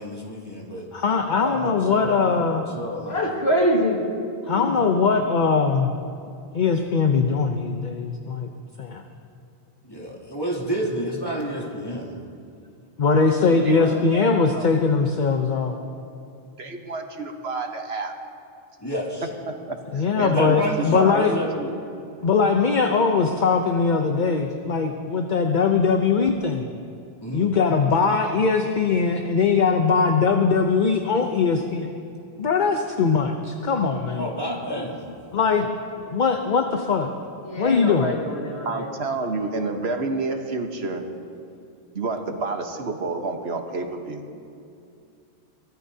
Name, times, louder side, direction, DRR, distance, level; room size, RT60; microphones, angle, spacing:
voice 1, 0.0-0.9 1.3-3.3 9.8-12.2 18.8-19.3 20.3-21.5 27.2-27.5 34.2-35.1, equal, 20° left, -4 dB, 2.7 m, -30 dB
voice 2, 0.9-2.6 4.5-5.9 6.5-8.5 8.8-9.0 13.0-15.7 19.9-21.3 22.2-26.7 27.3-31.9 32.4-34.3 35.3-35.7 36.1-37.1 37.6-38.1, left 5 dB, 50° left, 4 dB, 0.8 m, -21 dB
voice 3, 3.1-4.0 4.4-4.8 13.5-14.0 34.1-34.2 37.4-38.9, equal, 75° left, -1 dB, 2.2 m, -25 dB
voice 4, 13.4-13.8 14.1-14.6 16.6-18.1 19.5-21.7 38.6-41.0 41.9-44.3, right 3 dB, 75° right, 4 dB, 1.4 m, -29 dB
23.5 x 17.5 x 2.8 m, 2.5 s
omnidirectional pair, 1.1 m